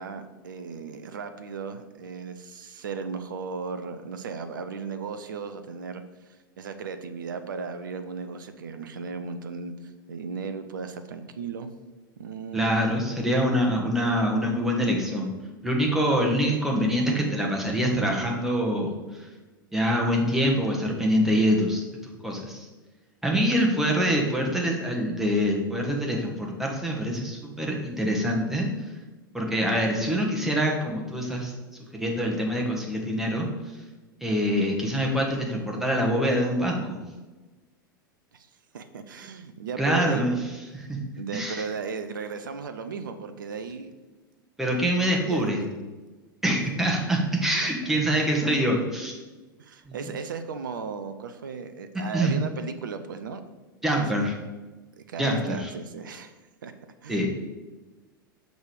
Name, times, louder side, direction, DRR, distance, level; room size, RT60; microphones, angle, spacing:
voice 1, 0.0-6.0 6.6-11.7 12.2-13.2 38.3-38.5 38.7-40.4 41.2-43.9 45.0-45.5 47.6-47.7 49.6-53.4 53.8-54.2 55.0-56.3 56.6-56.7 57.0-57.3, right 5 dB, 65° right, 9 dB, 0.6 m, -36 dB
voice 2, 12.5-15.3 15.6-19.3 19.7-21.8 22.2-22.7 23.2-28.7 29.3-31.5 31.9-33.5 34.2-37.0 39.8-40.4 40.7-41.6 44.6-45.6 46.4-49.2 49.9-50.1 52.1-52.3 53.8-54.3 55.2-55.7 57.1-57.3, equal, 5° right, -1 dB, 1.5 m, -25 dB
6.4 x 5.2 x 4.8 m, 1.2 s
figure-of-eight pair, 90°, 11 cm